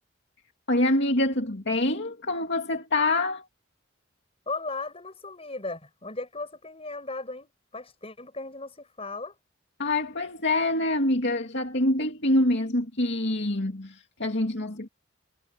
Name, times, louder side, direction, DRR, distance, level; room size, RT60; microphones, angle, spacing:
voice 1, 0.7-3.4 9.8-14.9, left 1 dB, 55° left, 2.5 m, -25 dB
voice 2, 4.5-9.3, left 3 dB, 30° left, 7.1 m, -36 dB
head